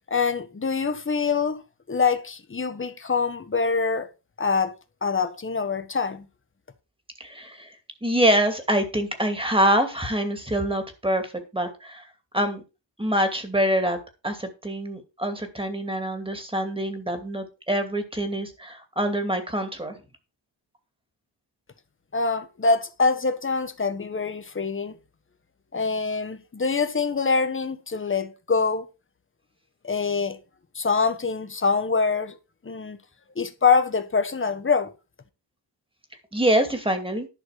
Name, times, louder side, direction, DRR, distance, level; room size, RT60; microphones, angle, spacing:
voice 1, 0.1-1.6 1.9-4.1 4.4-4.7 5.0-6.3 22.1-25.0 25.7-28.9 29.8-30.4 30.7-32.4 32.6-33.0 33.3-34.9, left 4 dB, 30° left, 1.4 m, -24 dB
voice 2, 7.2-7.7 8.0-12.1 12.3-12.6 13.0-14.0 14.2-20.0 36.3-37.3, right 1 dB, 10° right, 2.6 m, -25 dB
11.5 x 6.0 x 6.5 m
wide cardioid pair, 140°, 43 cm